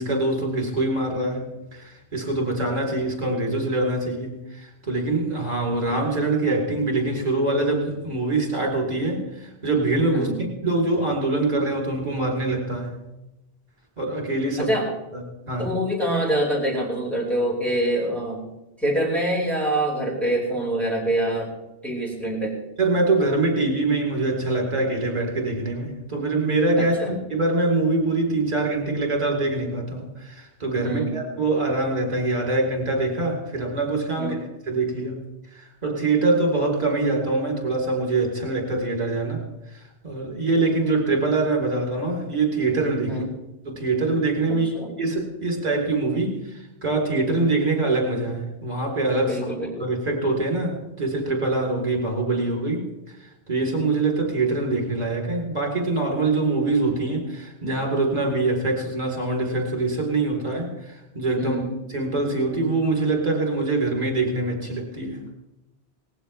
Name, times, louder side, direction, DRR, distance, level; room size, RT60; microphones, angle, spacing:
voice 1, 0.0-10.3 10.6-13.0 14.0-14.7 15.1-15.7 22.8-35.2 35.5-39.4 39.7-43.2 43.6-49.4 49.8-61.6 61.9-65.2, right 2 dB, 35° right, -1 dB, 4.5 m, -24 dB
voice 2, 14.6-14.9 15.6-18.4 18.8-21.5 21.8-22.6 26.8-27.2 30.8-31.1 34.2-34.4 43.1-43.3 44.5-45.0 49.3-49.7 61.4-61.7, right 1 dB, ahead, -5 dB, 5.7 m, -25 dB
20.0 x 15.5 x 3.5 m, 0.96 s
omnidirectional pair, 1.1 m